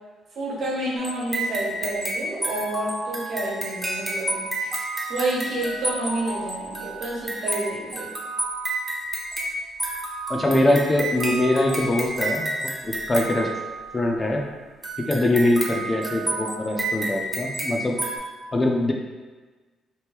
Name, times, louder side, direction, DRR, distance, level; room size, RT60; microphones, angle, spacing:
voice 1, 0.3-4.7 5.1-8.1, right 1 dB, 65° right, -5 dB, 1.1 m, -29 dB
sound 1, 1.0-14.1 14.8-18.2, right 2 dB, 15° right, 0.7 m, -30 dB
voice 2, 10.3-12.5 12.8-13.5 13.9-14.4 15.1-18.0 18.5-18.9, left 1 dB, 25° left, 1 dB, 0.4 m, -22 dB
2.9 x 2.6 x 3.4 m, 1.3 s
cardioid pair, 90°, 0 cm